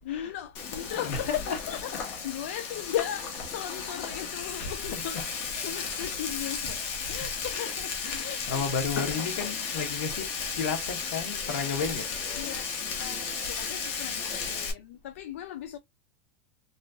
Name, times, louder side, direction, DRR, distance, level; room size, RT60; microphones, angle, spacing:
voice 1, 0.0-1.4 1.7-8.6 9.4-9.5 12.3-12.6 13.0-15.8, left 11 dB, 80° left, 0.4 m, -37 dB
Frying (food), 0.5-14.7, left 6 dB, 35° left, 0.8 m, -34 dB
voice 2, 0.9-2.0 2.9-3.1 3.8-3.9 4.6-5.3 5.7-5.9 6.4-6.7 7.0-7.7 8.0-12.1, left 5 dB, 65° left, 1.1 m, -34 dB
3.0 x 2.7 x 2.2 m
supercardioid pair, 170°, 7 cm